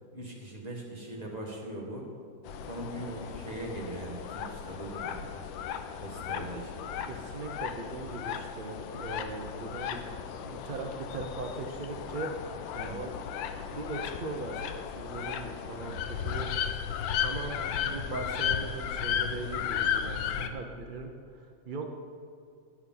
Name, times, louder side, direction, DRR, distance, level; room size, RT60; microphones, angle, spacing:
voice 1, 0.1-2.1 2.6-5.4 6.0-7.0 12.8-13.1, right 1 dB, 20° right, -2 dB, 1.8 m, -41 dB
sound 1, 2.5-20.5, left 8 dB, 80° left, 1.4 m, -35 dB
voice 2, 7.1-10.2 10.4-12.3 12.7-13.1 13.7-16.8 17.2-17.6 17.8-21.9, right 3 dB, 70° right, 3 dB, 0.4 m, -39 dB
14.5 x 9.6 x 3.9 m, 2.5 s
omnidirectional pair, 2.1 m